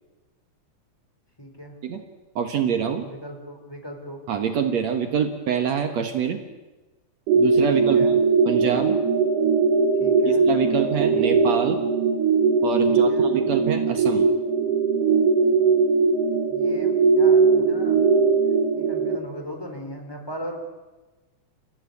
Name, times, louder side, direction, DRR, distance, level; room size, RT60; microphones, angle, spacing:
voice 1, 1.4-1.8 3.0-4.2 7.7-8.1 10.0-10.4 12.9-13.3 16.5-18.1 18.7-20.6, equal, 5° left, 3 dB, 3.7 m, -38 dB
voice 2, 2.4-3.0 4.3-6.4 7.4-9.0 10.3-11.8 12.6-14.3, right 7 dB, 65° right, 6 dB, 2.6 m, -25 dB
sound 1, 7.3-19.2, right 4 dB, 80° right, 3.4 m, -20 dB
28.0 x 15.0 x 9.8 m, 1.1 s
omnidirectional pair, 3.4 m